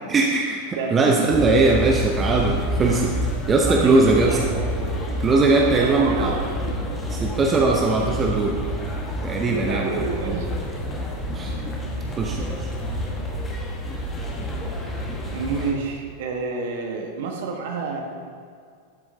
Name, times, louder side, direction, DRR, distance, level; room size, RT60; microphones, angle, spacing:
voice 1, 0.1-4.4 5.2-6.4 7.1-8.6 9.2-9.9 10.2-10.4 11.3-11.5 12.2-12.7, right 3 dB, 20° right, 0 dB, 0.8 m, -20 dB
voice 2, 0.7-1.3 3.6-4.4 5.6-6.4 9.5-10.4 15.3-18.0, right 4 dB, 55° right, 2 dB, 1.3 m, -29 dB
sound 1, 1.3-15.7, equal, 15° left, 1.5 m, -28 dB
12.0 x 7.7 x 2.8 m, 2.2 s
figure-of-eight pair, 90°, 0 cm